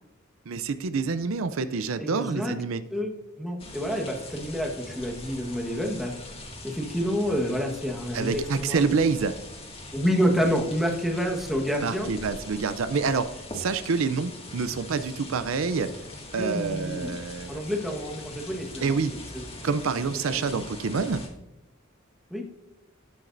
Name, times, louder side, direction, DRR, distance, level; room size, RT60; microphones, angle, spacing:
voice 1, 0.5-2.8 8.1-9.3 11.8-13.3 13.5-15.9 16.3-17.6 18.8-19.1 19.6-21.2, right 4 dB, 70° right, 11 dB, 0.5 m, -27 dB
voice 2, 2.0-2.5 2.9-6.1 6.6-8.8 9.9-12.1 16.4-17.1 17.5-19.0 19.3-19.6 20.3-20.4 22.3-22.4, equal, ahead, 1 dB, 1.4 m, -28 dB
sound 1, 3.6-21.3, left 2 dB, 30° left, 1.9 m, -42 dB
12.0 x 9.1 x 2.6 m, 0.94 s
head